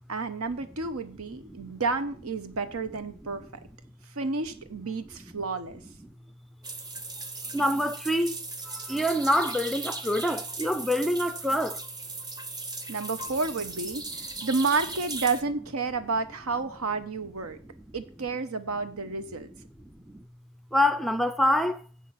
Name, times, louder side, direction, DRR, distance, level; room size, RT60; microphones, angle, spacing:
voice 1, 0.1-3.6 4.1-5.8 12.9-17.6 17.9-19.5, right 4 dB, 80° right, 0.9 m, -30 dB
sound 1, 6.6-15.4, right 3 dB, 20° right, 0.7 m, -38 dB
voice 2, 7.5-8.4 8.6-11.8 20.1-20.2 20.7-21.8, left 1 dB, ahead, 0.4 m, -26 dB
7.7 x 6.0 x 6.9 m
head